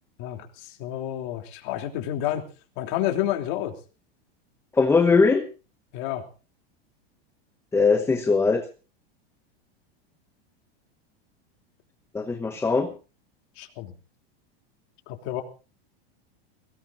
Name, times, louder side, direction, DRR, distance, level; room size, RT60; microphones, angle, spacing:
voice 1, 0.2-2.4 2.8-3.7 5.9-6.2 13.6-13.9 15.1-15.4, left 12 dB, 55° left, 4 dB, 3.2 m, -29 dB
voice 2, 4.8-5.4 7.7-8.6 12.1-12.9, left 4 dB, 10° left, 8 dB, 1.0 m, -20 dB
22.5 x 18.0 x 2.7 m, 0.34 s
supercardioid pair, 140°, 31 cm